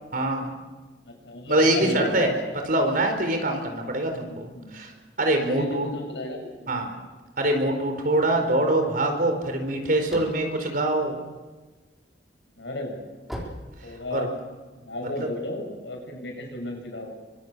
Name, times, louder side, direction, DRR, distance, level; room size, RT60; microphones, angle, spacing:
voice 1, 0.1-0.5 1.5-2.3 2.6-4.9 5.2-5.9 6.7-6.9 7.4-11.2 14.1-14.3 15.2-15.3, right 1 dB, 55° right, 5 dB, 4.5 m, -24 dB
voice 2, 1.0-2.2 4.5-4.8 5.5-6.7 12.6-13.1 13.8-14.3 14.8-17.1, left 1 dB, 90° left, 2 dB, 7.5 m, -34 dB
sound 1, 10.1-11.8 12.3-14.5, equal, ahead, 4.9 m, -39 dB
25.0 x 25.0 x 6.9 m, 1.3 s
head